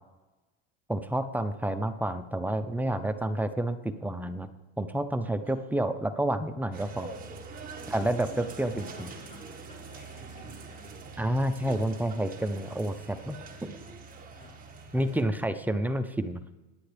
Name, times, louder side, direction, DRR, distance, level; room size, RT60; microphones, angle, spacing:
voice 1, 0.9-4.5 4.8-7.1 7.9-9.1 11.2-13.8 14.9-16.4, right 1 dB, 5° right, 9 dB, 0.5 m, -29 dB
sound 1, 6.7-15.2, right 4 dB, 25° right, 1.6 m, -44 dB
voice 2, 7.7-11.1 14.3-14.5, left 2 dB, 20° left, -3 dB, 4.3 m, -53 dB
21.5 x 9.6 x 3.4 m, 1.1 s
supercardioid pair, 125°, 35 cm